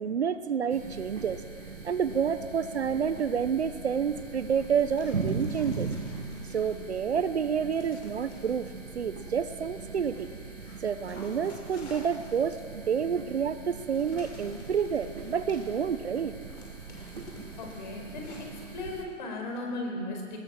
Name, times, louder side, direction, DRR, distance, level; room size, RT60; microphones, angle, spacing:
voice 1, 0.0-1.4 1.8-5.9 6.5-8.7 8.9-10.3 10.8-16.3, right 7 dB, 55° right, 12 dB, 1.0 m, -29 dB
sound 1, 0.7-19.1, right 4 dB, 80° right, 5.7 m, -40 dB
Dog, 4.2-7.1 7.7-8.7 9.4-19.7, left 2 dB, 60° left, 6.9 m, -53 dB
voice 2, 17.6-18.5 18.7-20.4, left 2 dB, 35° left, 1 dB, 4.8 m, -36 dB
20.5 x 20.0 x 7.3 m, 2.2 s
hypercardioid pair, 170°, 39 cm